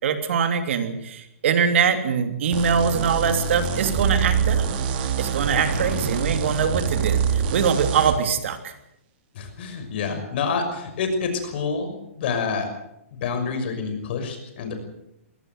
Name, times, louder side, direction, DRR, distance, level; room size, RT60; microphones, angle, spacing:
voice 1, 0.0-4.7 5.2-8.7, right 6 dB, 60° right, 7 dB, 3.1 m, -23 dB
sound 1, 2.5-8.2, right 6 dB, 40° right, 3.1 m, -25 dB
Explosion, 3.5-7.7, right 4 dB, 85° right, 4.5 m, -35 dB
voice 2, 9.3-12.7 13.1-14.7, left 5 dB, 50° left, 7 dB, 6.1 m, -27 dB
22.5 x 17.5 x 8.0 m, 0.80 s
hypercardioid pair, 155°, 8 cm